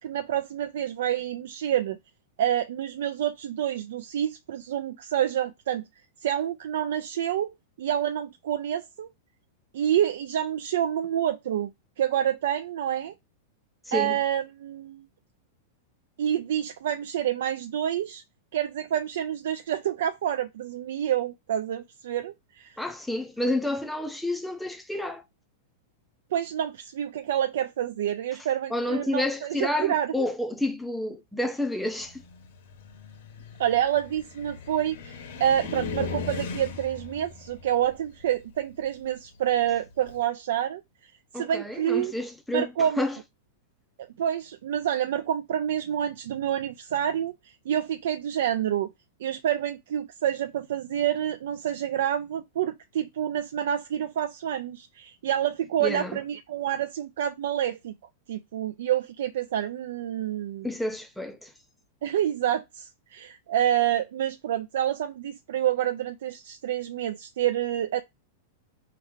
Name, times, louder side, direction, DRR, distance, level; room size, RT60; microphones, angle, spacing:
voice 1, 0.0-2.0 2.4-5.8 6.2-9.1 9.7-11.7 12.0-13.1 13.9-15.0 16.2-18.2 18.5-22.8 26.3-30.3 33.6-40.8 41.3-42.1 42.5-43.0 44.2-48.9 49.2-57.9 58.3-60.7 62.0-68.0, right 10 dB, 70° right, 0.4 m, -28 dB
voice 2, 13.9-14.2 22.8-25.2 28.7-32.2 41.3-43.2 55.8-56.2 60.6-61.5, left 1 dB, ahead, 0.5 m, -30 dB
Car, 32.0-40.2, left 4 dB, 55° left, 1.0 m, -39 dB
4.5 x 2.9 x 3.5 m
supercardioid pair, 165°, 0 cm